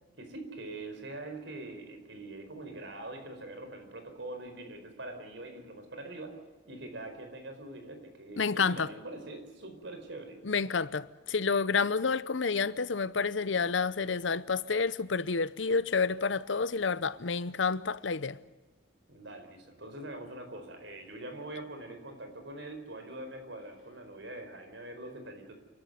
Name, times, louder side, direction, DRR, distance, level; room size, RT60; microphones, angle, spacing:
voice 1, 0.2-6.4 6.7-10.4 19.1-25.5, right 2 dB, 65° right, 4.6 m, -43 dB
voice 2, 8.4-8.9 10.4-18.4, left 5 dB, 70° left, 0.8 m, -29 dB
29.0 x 12.5 x 9.5 m
head